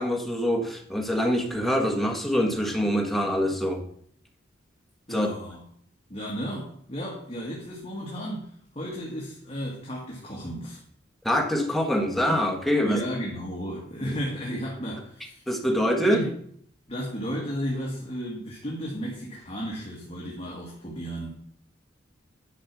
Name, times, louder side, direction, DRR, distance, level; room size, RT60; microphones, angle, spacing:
voice 1, 0.0-3.8 5.1-5.3 11.2-13.0 14.0-14.2 15.5-16.3, equal, ahead, 3 dB, 1.3 m, -25 dB
voice 2, 5.1-5.6 6.1-8.5 8.7-10.8 12.8-15.4 16.1-16.3 16.9-21.3, equal, 30° left, -3 dB, 1.9 m, -34 dB
10.0 x 5.6 x 6.0 m, 0.63 s
head